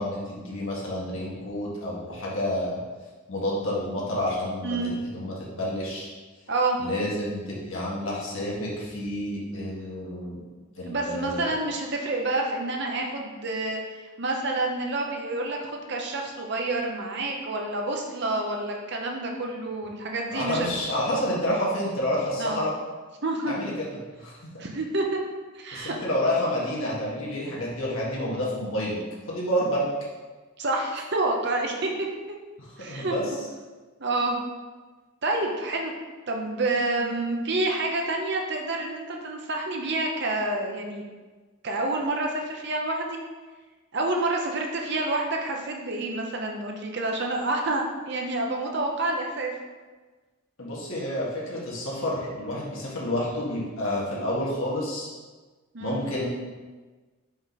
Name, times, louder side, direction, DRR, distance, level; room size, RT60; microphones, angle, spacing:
voice 1, 0.0-2.8 3.3-6.1 6.8-10.4 10.8-11.5 20.3-22.7 23.4-23.9 24.2-24.7 25.7-29.0 29.3-29.9 32.9-33.2 50.6-55.1 55.8-56.3, left 1 dB, 70° left, -5 dB, 1.7 m, -29 dB
voice 2, 4.6-4.9 6.5-6.8 10.9-13.8 14.2-20.7 22.4-22.6 23.2-23.5 24.6-25.2 25.5-26.0 30.6-32.1 32.8-33.1 34.0-34.4 35.2-35.9 36.3-41.1 41.6-43.2 43.9-49.5 55.7-56.0, right 2 dB, 55° right, 1 dB, 0.8 m, -28 dB
5.1 x 4.9 x 4.1 m, 1.3 s
head